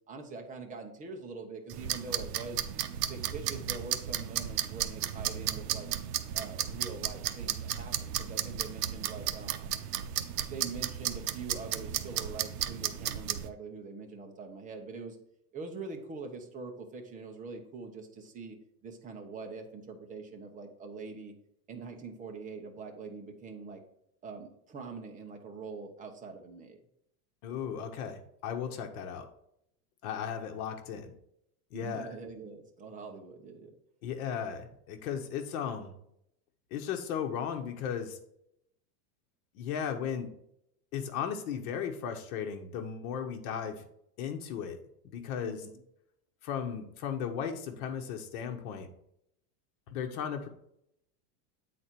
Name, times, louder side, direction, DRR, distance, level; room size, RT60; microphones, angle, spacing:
voice 1, 0.1-2.6 3.1-5.9 6.3-9.7 10.4-15.2 15.5-18.6 18.8-21.3 21.7-23.8 24.2-26.8 31.7-33.7 45.4-45.8, right 4 dB, 15° right, 3 dB, 0.9 m, -44 dB
sound 1, 1.7-13.5, right 11 dB, 70° right, 0.9 m, -34 dB
voice 2, 27.4-29.3 30.0-31.1 31.7-32.2 34.0-35.9 36.7-38.2 39.5-40.3 40.9-43.8 44.2-44.8 45.0-45.6 46.4-48.9 49.9-50.5, left 7 dB, 60° left, 5 dB, 1.4 m, -36 dB
8.6 x 4.3 x 4.5 m, 0.75 s
supercardioid pair, 160°, 49 cm